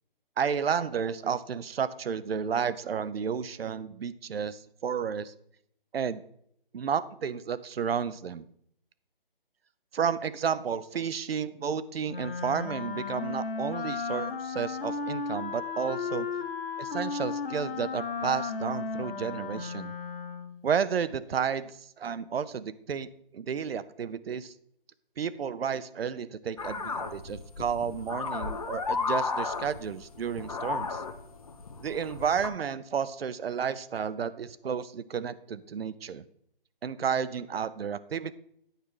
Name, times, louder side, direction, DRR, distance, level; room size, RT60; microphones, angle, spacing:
voice 1, 0.4-5.3 5.9-6.2 6.7-8.4 9.9-16.3 16.8-19.9 20.6-24.5 25.2-31.0 31.8-36.2 36.8-38.3, right 7 dB, 90° right, 16 dB, 0.5 m, -32 dB
Wind instrument woodwind instrument, 12.1-20.6, left 4 dB, 75° left, 0.8 m, -34 dB
sound 1, 26.6-32.5, left 4 dB, 40° left, 0.5 m, -34 dB
8.9 x 4.7 x 3.0 m, 0.70 s
figure-of-eight pair, 160°, 29 cm